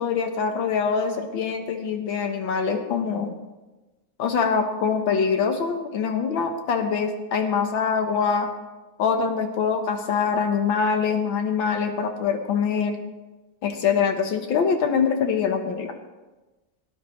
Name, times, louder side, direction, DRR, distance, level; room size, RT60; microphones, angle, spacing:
voice 1, 0.0-3.3 4.2-8.5 9.0-13.0 13.6-15.9, left 6 dB, 85° left, 5 dB, 1.9 m, -24 dB
17.5 x 10.0 x 3.1 m, 1.1 s
omnidirectional pair, 2.1 m